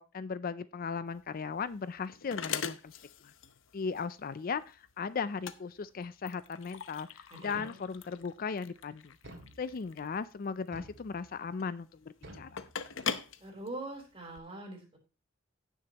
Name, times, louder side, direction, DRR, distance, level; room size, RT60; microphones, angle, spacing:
voice 1, 0.0-3.0 3.2-3.3 3.7-9.2 9.6-12.6, left 5 dB, 45° left, 15 dB, 0.4 m, -37 dB
sound 1, 1.1-14.4, left 7 dB, 65° left, 0.8 m, -42 dB
voice 2, 7.3-7.7 13.4-15.0, right 2 dB, 30° right, 0 dB, 3.9 m, -43 dB
sound 2, 7.5-8.2 9.2-10.1 10.7-11.5 12.2-13.2, equal, 60° right, 2.4 m, -52 dB
16.5 x 6.4 x 2.9 m, 0.33 s
head